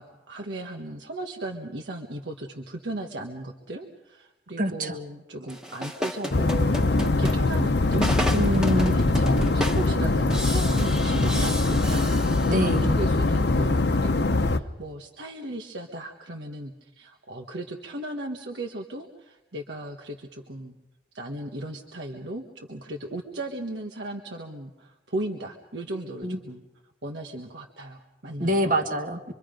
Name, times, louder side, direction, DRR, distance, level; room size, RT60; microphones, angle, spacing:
voice 1, 0.0-8.4 8.7-20.8 21.1-26.6 27.0-28.7, right 1 dB, 85° right, 2 dB, 1.5 m, -36 dB
voice 2, 4.6-5.0 8.3-9.1 12.5-12.9 26.2-26.4 28.4-29.3, equal, 50° right, 5 dB, 1.8 m, -25 dB
sound 1, 5.5-12.9, equal, 5° right, 1.4 m, -32 dB
sound 2, 6.3-14.6, left 2 dB, 70° left, 0.8 m, -23 dB
26.0 x 24.0 x 5.2 m, 0.96 s
head